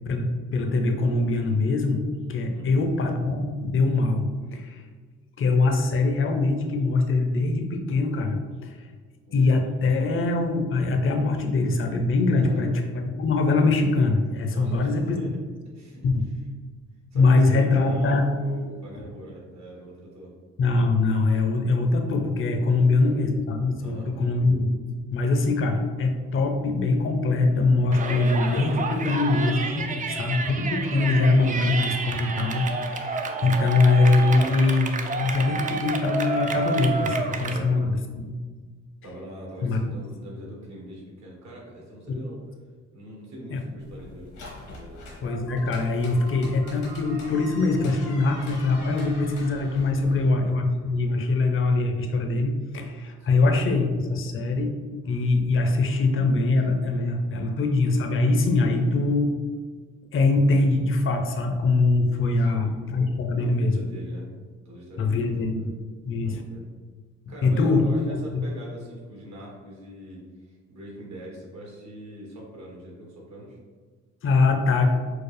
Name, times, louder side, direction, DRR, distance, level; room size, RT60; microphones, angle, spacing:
voice 1, 0.5-4.8 5.4-8.8 9.3-12.8 13.2-15.2 16.0-16.3 17.1-18.3 20.6-24.8 25.1-29.8 30.1-38.3 39.6-39.9 42.1-42.2 43.5-43.6 45.2-54.7 55.1-59.3 60.1-63.8 65.0-65.7 66.1-66.4 67.4-67.8 68.1-68.2 74.2-74.9, left 3 dB, 45° left, 4 dB, 0.5 m, -23 dB
voice 2, 2.5-2.8 9.3-9.5 10.0-10.1 12.4-12.9 14.5-15.3 15.7-16.0 17.1-20.3 22.7-23.1 23.8-24.3 29.6-30.0 37.4-37.7 39.0-42.4 42.9-44.3 44.7-45.1 49.9-50.4 53.2-53.4 58.6-59.1 62.4-62.7 63.4-64.3 64.6-65.5 66.2-66.6 67.3-70.2 70.5-73.6, right 1 dB, 65° right, -3 dB, 1.4 m, -42 dB
Yell, 27.9-37.6, right 4 dB, 30° right, 0.3 m, -30 dB
sound 1, 43.8-50.3, left 2 dB, 90° left, 1.2 m, -45 dB
sound 2, 45.2-51.1, right 1 dB, 45° right, 1.0 m, -47 dB
4.6 x 2.0 x 3.1 m, 1.5 s
cardioid pair, 90°, 30 cm